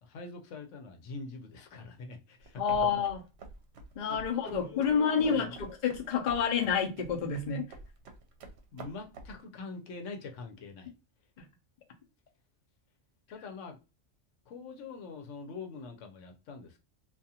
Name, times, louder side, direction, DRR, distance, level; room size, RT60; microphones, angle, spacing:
voice 1, 0.0-3.0 4.1-5.6 8.7-10.9 13.3-13.8 14.5-16.8, left 4 dB, 90° left, 1.0 m, -44 dB
sound 1, 2.4-9.4, right 3 dB, 65° right, 0.9 m, -49 dB
voice 2, 2.6-3.2 4.0-7.6 11.4-11.5, left 6 dB, 50° left, 0.6 m, -29 dB
2.5 x 2.4 x 2.7 m
omnidirectional pair, 1.2 m